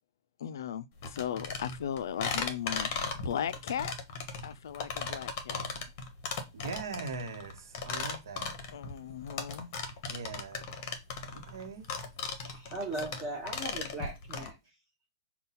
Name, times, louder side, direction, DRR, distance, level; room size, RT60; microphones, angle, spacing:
voice 1, 0.4-3.9 4.4-5.7 8.7-9.7 12.4-12.5, left 9 dB, 75° left, 0.3 m, -37 dB
cepillando botella, 1.0-14.5, left 5 dB, 30° left, 0.7 m, -37 dB
voice 2, 6.5-8.5 10.1-10.6 11.3-11.9, right 5 dB, 85° right, 0.9 m, -41 dB
voice 3, 12.4-14.6, right 2 dB, 15° right, 0.7 m, -38 dB
5.5 x 2.2 x 4.0 m
supercardioid pair, 180°, 2 cm